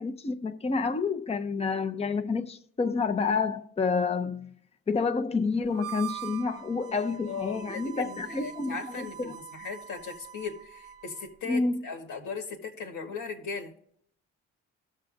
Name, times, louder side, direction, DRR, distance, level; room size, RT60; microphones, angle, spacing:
voice 1, 0.0-4.5 4.9-9.3 11.4-11.8, left 4 dB, 20° left, 0.7 m, -29 dB
Harmonica, 5.7-11.4, right 11 dB, 50° right, 0.5 m, -43 dB
voice 2, 7.2-13.7, left 5 dB, 85° left, 1.8 m, -38 dB
18.5 x 6.4 x 2.6 m
cardioid pair, 90°, 30 cm